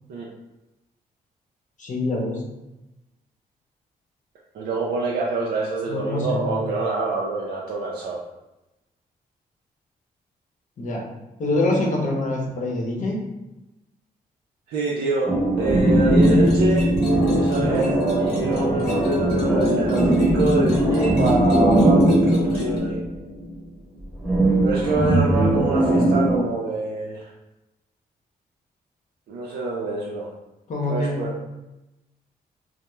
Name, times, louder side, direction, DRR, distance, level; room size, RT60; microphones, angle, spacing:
voice 1, 1.8-2.4 5.9-6.7 10.8-11.0 11.4-13.2 30.7-31.2, left 2 dB, 50° left, -1 dB, 0.7 m, -25 dB
voice 2, 4.5-8.2 14.7-16.9 17.4-23.0 24.6-27.3 29.3-30.3 30.9-31.4, right 3 dB, 80° right, -4 dB, 0.4 m, -26 dB
sound 1, 15.3-23.5 24.2-26.4, right 1 dB, ahead, 0.9 m, -19 dB
sound 2, 16.2-22.8, left 2 dB, 85° left, 0.8 m, -31 dB
2.2 x 2.0 x 3.0 m, 0.98 s
cardioid pair, 65°, 17 cm